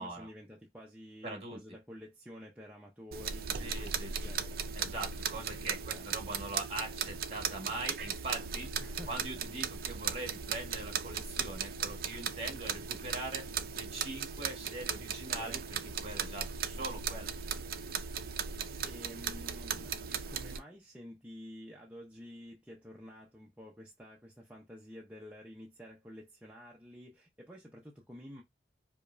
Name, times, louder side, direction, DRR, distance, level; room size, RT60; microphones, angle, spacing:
voice 1, 0.0-4.6 5.9-6.1 8.8-9.1 15.3-15.9 18.8-28.4, equal, 10° right, 0.6 m, -50 dB
voice 2, 1.2-1.6 3.6-4.2 4.7-8.7 9.1-15.6 16.0-17.3, right 2 dB, 35° right, 1.6 m, -42 dB
sound 1, 3.1-20.6, right 7 dB, 55° right, 0.4 m, -37 dB
5.0 x 2.2 x 2.5 m
head